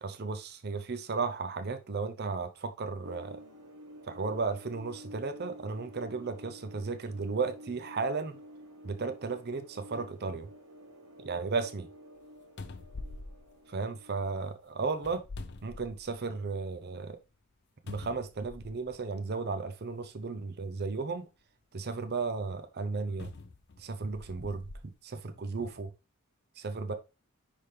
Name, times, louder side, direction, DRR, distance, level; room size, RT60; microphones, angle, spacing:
voice 1, 0.0-3.4 4.1-8.4 8.8-10.5 11.2-11.9 13.7-15.2 15.6-17.2 17.9-21.3 21.7-23.3 23.8-25.9 26.6-26.9, right 4 dB, 45° right, 0.6 m, -34 dB
sound 1, 3.0-14.3, equal, 70° right, 1.5 m, -51 dB
sound 2, 12.2-12.3 12.6-14.3 14.9-16.4 16.8-16.9 17.9-19.0 19.9-20.0 23.2-24.8 25.5-25.7, left 3 dB, 50° left, 0.6 m, -45 dB
10.0 x 3.6 x 3.3 m
head